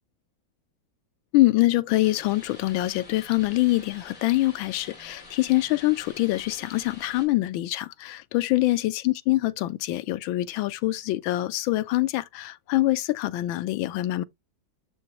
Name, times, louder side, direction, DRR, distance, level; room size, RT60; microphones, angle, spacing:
voice 1, 1.3-14.2, left 17 dB, 75° left, 1.4 m, -24 dB
sound 1, 2.0-7.2, left 2 dB, 40° left, 3.2 m, -47 dB
6.9 x 5.4 x 2.9 m
omnidirectional pair, 2.2 m